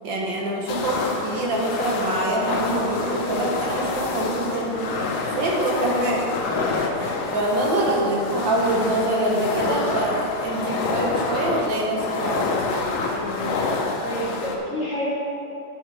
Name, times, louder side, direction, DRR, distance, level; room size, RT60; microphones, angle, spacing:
voice 1, 0.0-4.8 5.3-6.2 6.9-12.5, right 1 dB, 60° right, -2 dB, 1.9 m, -25 dB
sound 1, 0.7-14.6, left 3 dB, 75° left, 1.7 m, -27 dB
voice 2, 13.1-13.5 14.0-15.1, left 1 dB, 45° left, -5 dB, 1.3 m, -29 dB
8.0 x 7.9 x 4.9 m, 2.8 s
omnidirectional pair, 2.4 m